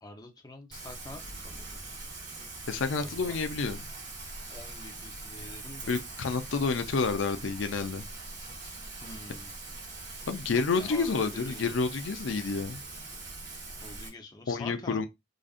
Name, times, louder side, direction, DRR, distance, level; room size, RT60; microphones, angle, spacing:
voice 1, 0.0-1.8 3.0-3.4 4.5-5.9 9.0-9.5 10.5-11.8 13.8-15.1, left 2 dB, 20° left, 0.7 m, -46 dB
Rain, 0.7-14.1, right 3 dB, 65° right, 2.0 m, -42 dB
voice 2, 2.7-3.8 5.9-8.1 10.3-12.8 14.5-15.1, left 4 dB, 85° left, 0.5 m, -29 dB
5.0 x 2.5 x 2.4 m
head